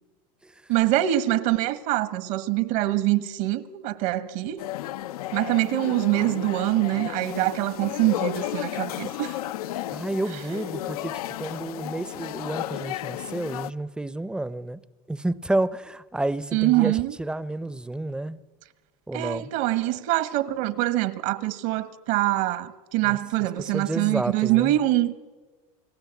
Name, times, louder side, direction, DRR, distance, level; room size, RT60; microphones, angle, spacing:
voice 1, 0.7-4.6 5.3-9.4 16.5-17.1 19.1-25.1, right 16 dB, 65° right, 1.5 m, -24 dB
sound 1, 4.6-13.7, left 14 dB, 90° left, 0.7 m, -33 dB
voice 2, 9.9-14.8 15.1-18.4 19.1-19.5 23.0-23.2 23.6-24.8, right 2 dB, 5° right, 0.7 m, -30 dB
29.0 x 18.5 x 8.3 m
supercardioid pair, 130°, 19 cm